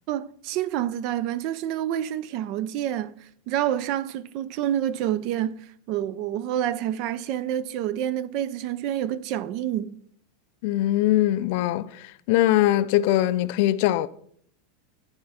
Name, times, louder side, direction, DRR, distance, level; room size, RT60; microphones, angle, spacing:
voice 1, 0.1-3.1 3.5-5.5 5.9-9.9, right 11 dB, 45° right, 0.4 m, -28 dB
voice 2, 10.6-14.1, left 14 dB, 55° left, 0.4 m, -22 dB
11.5 x 4.3 x 4.2 m
supercardioid pair, 145°, 0 cm